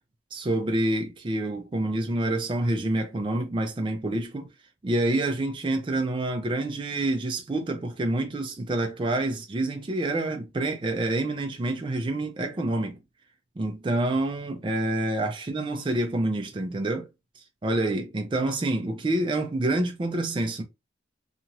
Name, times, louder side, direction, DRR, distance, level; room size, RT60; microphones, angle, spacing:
voice 1, 0.3-4.5 4.8-13.0 13.6-17.1 17.4-20.6, right 2 dB, 25° right, 0.3 m, -27 dB
2.8 x 2.4 x 2.8 m
head